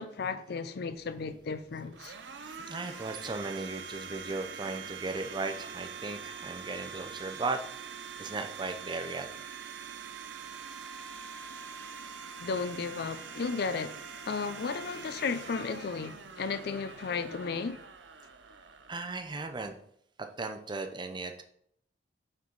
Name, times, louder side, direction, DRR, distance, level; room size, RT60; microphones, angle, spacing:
voice 1, 0.0-2.1 12.4-14.0 14.3-17.9, left 5 dB, 60° left, 0.4 m, -34 dB
Domestic sounds home sounds, 0.9-19.8, right 6 dB, 70° right, 0.6 m, -44 dB
voice 2, 2.4-7.6 8.2-9.3 18.9-19.8 20.2-21.4, right 3 dB, 25° right, 0.6 m, -36 dB
5.9 x 4.4 x 3.9 m
head